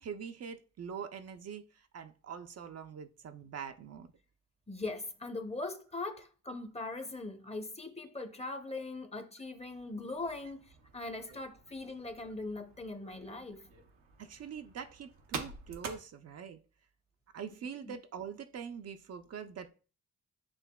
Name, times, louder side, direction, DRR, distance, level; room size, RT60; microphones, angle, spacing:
voice 1, 0.0-4.1 14.2-16.6 17.3-19.7, right 7 dB, 50° right, 0.5 m, -44 dB
voice 2, 4.7-13.7 17.8-17.9, left 2 dB, 20° left, 0.8 m, -41 dB
sound 1, 9.6-16.0, right 5 dB, 90° right, 0.7 m, -48 dB
7.0 x 2.6 x 2.2 m
supercardioid pair, 50°, 32 cm